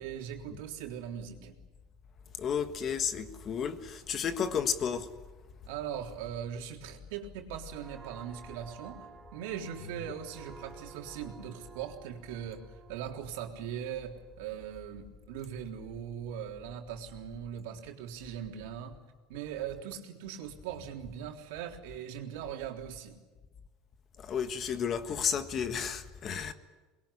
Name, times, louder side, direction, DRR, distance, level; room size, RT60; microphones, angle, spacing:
voice 1, 0.0-1.6 5.7-19.0 19.3-23.2, right 9 dB, 80° right, 3.6 m, -40 dB
voice 2, 2.4-5.1 24.2-26.5, left 7 dB, 35° left, 1.5 m, -32 dB
sound 1, 7.5-15.0 15.4-15.7, right 5 dB, 20° right, 4.5 m, -54 dB
23.5 x 21.5 x 9.9 m
cardioid pair, 145°, 0 cm